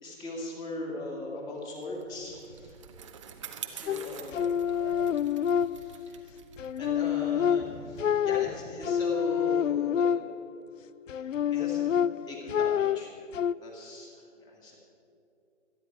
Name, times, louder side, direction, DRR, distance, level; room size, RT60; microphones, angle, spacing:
voice 1, 0.0-2.8 3.6-4.9 5.6-6.3 6.8-10.1 11.1-13.1 13.6-14.8, left 1 dB, 10° left, -1 dB, 2.2 m, -40 dB
Bicycle, 1.8-8.5, right 7 dB, 25° right, 0.8 m, -47 dB
sound 1, 3.9-6.2 6.6-10.6 11.1-13.5, left 9 dB, 85° left, 0.5 m, -28 dB
26.0 x 10.0 x 4.6 m, 2.7 s
figure-of-eight pair, 150°, 37 cm